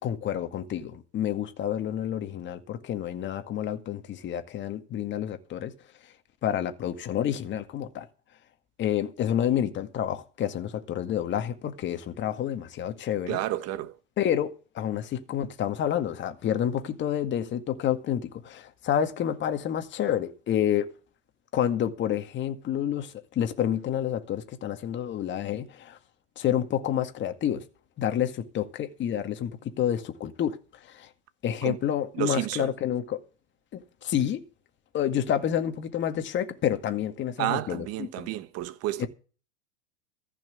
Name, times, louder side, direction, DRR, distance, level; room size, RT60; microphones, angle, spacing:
voice 1, 0.0-5.7 6.4-8.1 8.8-13.4 14.2-20.9 21.5-26.0 26.4-27.6 28.0-31.1 31.4-33.2 33.7-34.4 34.9-38.3 39.0-39.1, left 10 dB, 30° left, 2.0 m, -29 dB
voice 2, 13.3-14.0 31.6-31.8 32.1-32.7 37.4-39.1, right 15 dB, 40° right, 1.5 m, -30 dB
14.5 x 6.2 x 9.3 m
supercardioid pair, 120°, 36 cm